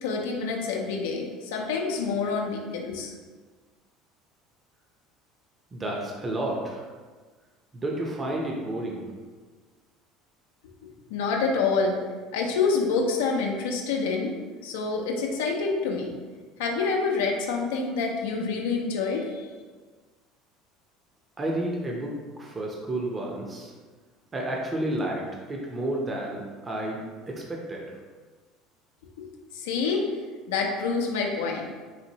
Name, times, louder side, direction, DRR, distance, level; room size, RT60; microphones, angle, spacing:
voice 1, 0.0-3.1 11.1-12.0 12.3-14.3 14.6-16.1 16.6-19.5 29.5-30.0 30.5-31.7, left 4 dB, 85° left, 1 dB, 0.5 m, -27 dB
voice 2, 5.7-6.8 7.7-9.1 21.4-23.7 24.3-27.0 27.3-27.9, right 1 dB, 25° right, -1 dB, 0.7 m, -31 dB
4.1 x 2.6 x 2.9 m, 1.4 s
supercardioid pair, 90°, 0 cm